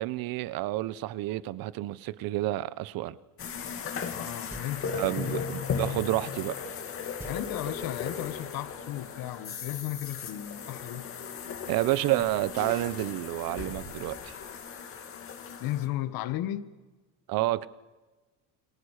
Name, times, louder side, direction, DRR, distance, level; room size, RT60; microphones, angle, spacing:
voice 1, 0.0-3.2 4.9-6.6 11.7-14.4 17.3-17.7, right 16 dB, 70° right, 1.0 m, -29 dB
sound 1, 3.4-15.9, left 6 dB, 35° left, 2.5 m, -37 dB
voice 2, 4.0-5.5 7.2-11.1 15.6-16.8, left 13 dB, 70° left, 1.5 m, -35 dB
sound 2, 4.5-5.1 7.2-8.2, right 1 dB, 5° right, 1.3 m, -47 dB
29.0 x 24.5 x 6.5 m
cardioid pair, 165°, 37 cm